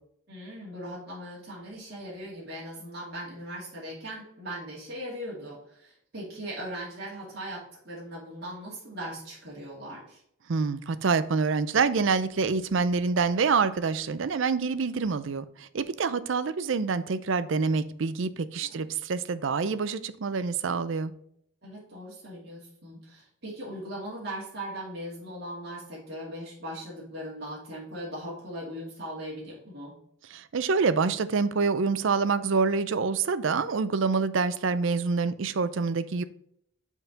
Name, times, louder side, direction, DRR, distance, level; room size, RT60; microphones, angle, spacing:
voice 1, 0.3-10.2 18.7-18.8 21.6-29.9, equal, 50° right, 2.3 m, -39 dB
voice 2, 10.5-21.1 30.3-36.2, right 4 dB, 70° right, 0.5 m, -26 dB
5.6 x 4.6 x 5.2 m
head